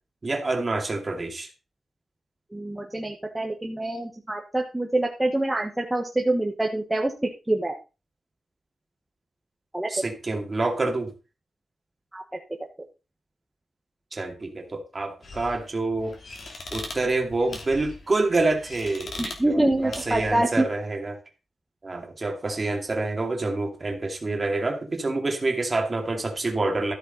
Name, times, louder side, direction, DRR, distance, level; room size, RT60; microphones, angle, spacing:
voice 1, 0.2-1.5 9.9-11.1 14.1-16.2 16.7-19.2 19.5-21.2 21.8-26.9, right 2 dB, 25° right, 4 dB, 2.3 m, -27 dB
voice 2, 2.5-7.1 7.5-7.8 9.7-10.0 12.1-12.2 19.2-20.6, right 1 dB, 10° right, 1 dB, 1.3 m, -25 dB
sound 1, 15.2-20.5, left 3 dB, 50° left, 3.1 m, -40 dB
13.5 x 8.2 x 4.0 m, 0.30 s
wide cardioid pair, 170°, 0 cm